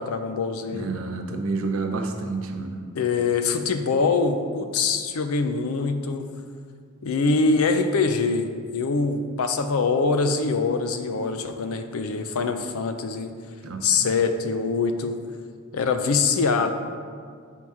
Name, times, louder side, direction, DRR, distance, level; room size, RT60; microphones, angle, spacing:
voice 1, 0.0-0.9 2.9-6.3 7.0-13.3 13.8-15.2 15.7-16.7, left 4 dB, 85° left, 8 dB, 0.5 m, -24 dB
voice 2, 0.7-2.8 13.6-14.1, right 3 dB, 70° right, 3 dB, 0.7 m, -29 dB
5.6 x 4.6 x 4.8 m, 2.1 s
head